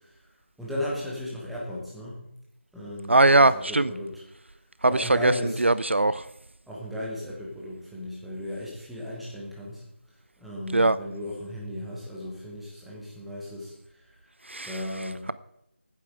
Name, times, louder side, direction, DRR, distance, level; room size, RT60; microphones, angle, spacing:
voice 1, 0.6-2.2 2.7-4.2 4.9-5.6 6.7-9.8 10.4-14.2 14.6-15.2, left 1 dB, ahead, -6 dB, 1.5 m, -35 dB
voice 2, 3.1-3.9 4.8-5.3 5.6-6.2 10.7-11.0 14.5-14.8, right 2 dB, 70° right, 16 dB, 0.5 m, -20 dB
13.5 x 9.2 x 4.9 m, 0.83 s
figure-of-eight pair, 165°, 7 cm